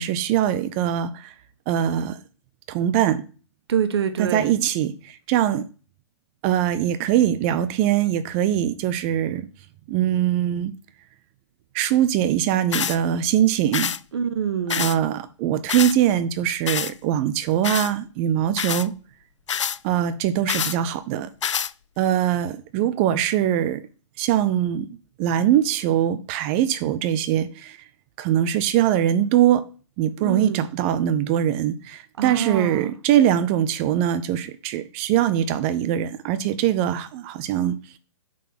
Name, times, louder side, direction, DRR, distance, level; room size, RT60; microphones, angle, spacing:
voice 1, 0.0-1.3 1.7-2.2 2.7-3.2 4.2-5.7 6.4-9.5 9.9-10.7 11.7-13.9 14.7-18.9 19.8-21.3 22.0-23.8 24.2-27.8 28.2-29.7 30.0-37.8, right 11 dB, 25° right, 0.4 m, -22 dB
voice 2, 3.7-4.5 14.1-14.9 30.2-30.6 32.2-32.9, right 7 dB, 55° right, 1.0 m, -26 dB
sound 1, 12.7-13.0 13.7-14.0 14.7-15.0 15.7-16.0 16.7-16.9 17.6-17.9 18.6-18.9 19.5-19.8 20.5-20.8 21.4-21.7, left 8 dB, 70° left, 0.4 m, -26 dB
5.6 x 3.7 x 5.9 m
figure-of-eight pair, 130°, 16 cm